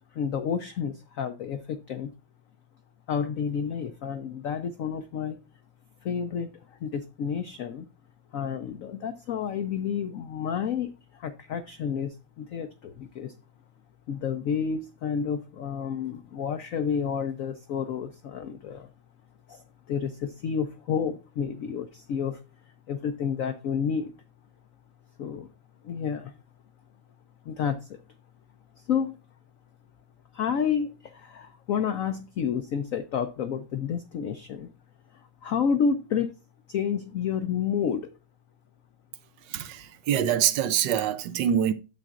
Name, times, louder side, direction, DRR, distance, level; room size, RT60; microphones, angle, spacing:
voice 1, 0.1-2.1 3.1-5.4 6.0-7.9 8.3-13.4 14.1-18.9 19.5-22.4 22.9-24.1 25.2-25.5 25.8-26.3 27.5-28.0 28.8-29.2 30.3-34.7 35.1-36.3 36.7-38.1, left 7 dB, 80° left, 0.7 m, -30 dB
voice 2, 39.5-41.7, right 9 dB, 75° right, 1.2 m, -25 dB
9.2 x 7.8 x 2.4 m
omnidirectional pair, 2.1 m